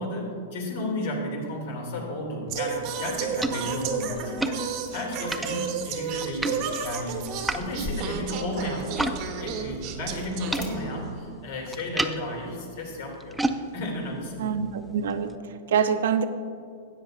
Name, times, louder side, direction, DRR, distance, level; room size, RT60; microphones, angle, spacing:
voice 1, 0.0-13.4 13.7-14.9, left 1 dB, 65° left, 1 dB, 2.3 m, -33 dB
Singing, 2.5-11.2, right 6 dB, 40° right, 1.0 m, -33 dB
sound 1, 2.7-9.2 9.5-15.4, right 1 dB, 5° right, 0.4 m, -35 dB
sound 2, 3.4-11.1, left 2 dB, 30° left, 1.1 m, -44 dB
voice 2, 14.4-16.2, right 7 dB, 75° right, 9 dB, 0.6 m, -26 dB
13.0 x 9.1 x 2.5 m, 2.3 s
supercardioid pair, 150°, 0 cm